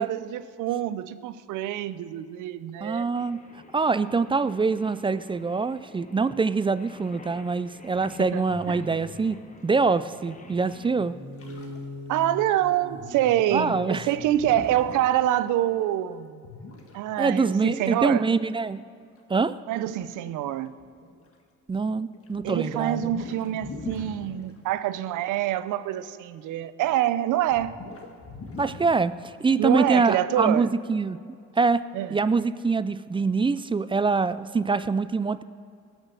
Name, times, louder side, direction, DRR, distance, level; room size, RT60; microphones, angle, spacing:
voice 1, 0.0-3.1 8.2-8.8 12.1-16.4 16.9-18.3 19.7-20.7 22.4-27.8 29.6-30.7 31.9-32.2, right 12 dB, 85° right, 14 dB, 0.6 m, -26 dB
voice 2, 2.8-3.4 3.7-11.2 13.5-14.1 17.2-18.8 19.3-19.5 21.7-23.1 28.6-29.1 29.4-31.2 31.6-35.4, right 4 dB, 20° right, 14 dB, 0.3 m, -24 dB
Singing, 3.1-10.9, left 3 dB, 25° left, 1.1 m, -50 dB
sound 1, 8.5-9.5 10.5-15.1 15.5-15.6, left 1 dB, 45° right, 2.3 m, -42 dB
sound 2, 11.4-11.9 12.1-12.2 12.5-12.6 12.8-12.9 14.2-15.0 16.4-17.0 19.2-19.3 20.0-20.1 20.7-21.3 21.7-24.6 26.9-27.0 27.4-28.9, left 3 dB, 50° left, 1.7 m, -41 dB
17.5 x 6.3 x 6.5 m, 2.4 s
cardioid pair, 90°, 30 cm